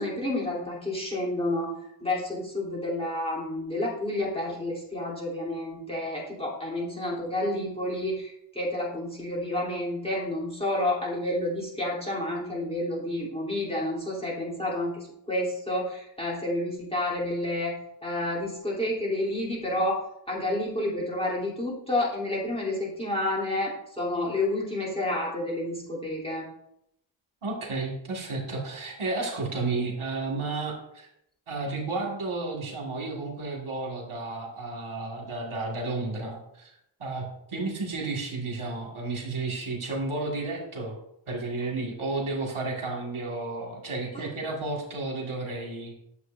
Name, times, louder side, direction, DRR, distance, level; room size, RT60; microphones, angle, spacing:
voice 1, 0.0-1.7 2.0-17.7 18.0-26.5 44.1-44.3, left 1 dB, 10° left, -5 dB, 3.0 m, -30 dB
voice 2, 27.4-31.1 31.5-36.7 37.0-41.0 41.3-45.9, right 3 dB, 85° right, -1 dB, 1.8 m, -32 dB
9.6 x 7.2 x 2.5 m, 0.76 s
wide cardioid pair, 70°, 48 cm